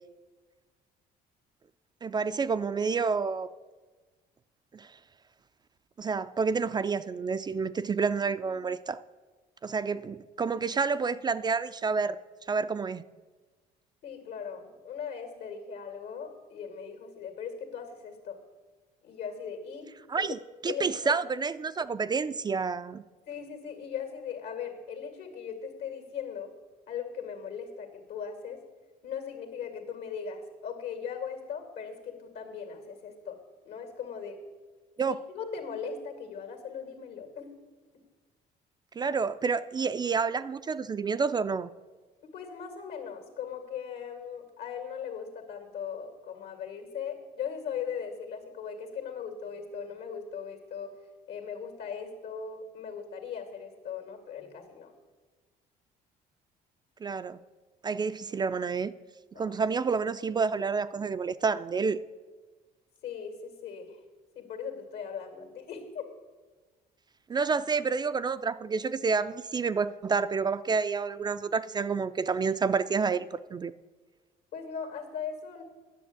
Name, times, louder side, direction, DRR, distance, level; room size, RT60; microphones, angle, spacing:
voice 1, 2.0-3.5 4.7-4.9 6.0-9.0 9.6-12.2 12.5-13.0 20.1-20.4 20.6-23.0 35.0-35.2 39.0-41.7 57.0-57.4 57.8-58.9 59.4-62.0 67.3-73.7, right 5 dB, 25° right, 12 dB, 0.3 m, -29 dB
voice 2, 14.0-18.4 19.0-19.9 20.2-20.3 20.7-21.2 23.3-26.5 26.9-28.6 29.0-33.4 33.6-34.4 35.0-37.5 42.2-50.9 51.3-54.9 59.3-59.6 63.0-64.0 64.3-66.1 74.5-75.6, left 7 dB, 75° left, 6 dB, 2.2 m, -39 dB
10.5 x 7.1 x 8.2 m, 1.3 s
cardioid pair, 110°, 17 cm